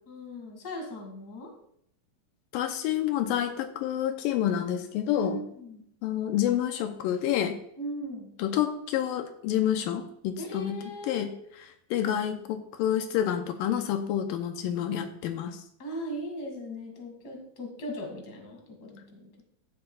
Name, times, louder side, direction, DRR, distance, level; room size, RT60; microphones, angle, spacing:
voice 1, 0.1-1.5 5.1-5.8 7.8-8.3 10.4-11.6 15.8-19.3, right 1 dB, 35° left, 2 dB, 2.0 m, -38 dB
voice 2, 2.5-5.4 6.0-7.6 8.4-11.3 11.6-15.6, left 10 dB, 85° left, 7 dB, 2.3 m, -28 dB
14.5 x 7.7 x 2.3 m, 0.70 s
omnidirectional pair, 4.0 m